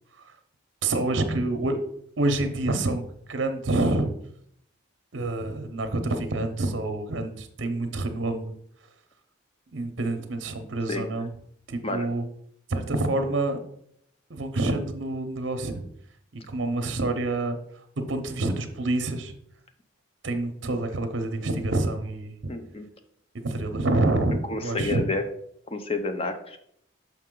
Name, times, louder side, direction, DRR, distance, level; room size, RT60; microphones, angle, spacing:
voice 1, 0.8-1.8 2.2-4.1 5.1-8.5 9.7-11.3 11.7-12.3 12.7-13.6 14.3-15.9 16.3-17.6 18.1-19.3 20.2-22.3 23.4-25.0, right 2 dB, 60° right, 7 dB, 0.7 m, -27 dB
voice 2, 22.5-22.9 24.5-25.2 25.7-26.6, left 2 dB, 30° left, 7 dB, 0.6 m, -29 dB
6.0 x 5.5 x 3.8 m, 0.70 s
head